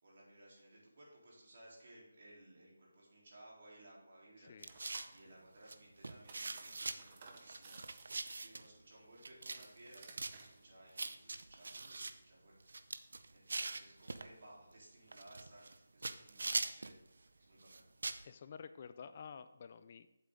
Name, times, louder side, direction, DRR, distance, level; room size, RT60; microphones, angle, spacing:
voice 1, 0.0-4.5 4.8-7.8 8.3-12.6 13.3-17.0 17.4-17.8, right 1 dB, 50° right, -4 dB, 3.5 m, -60 dB
voice 2, 4.4-4.7 18.2-20.1, left 6 dB, 30° left, 12 dB, 0.3 m, -51 dB
sound 1, 4.6-5.2 5.7-5.8 6.0-7.0 7.4-8.7 9.2-9.6 9.9-10.4 11.0-12.1 12.6-14.3 15.1-17.0 17.6-18.2, right 3 dB, 65° right, 0.6 m, -42 dB
sound 2, 4.7-5.2 6.0-8.6 9.4-10.6, right 4 dB, 30° right, 0.9 m, -57 dB
8.2 x 8.1 x 3.8 m, 0.94 s
figure-of-eight pair, 170°, 0 cm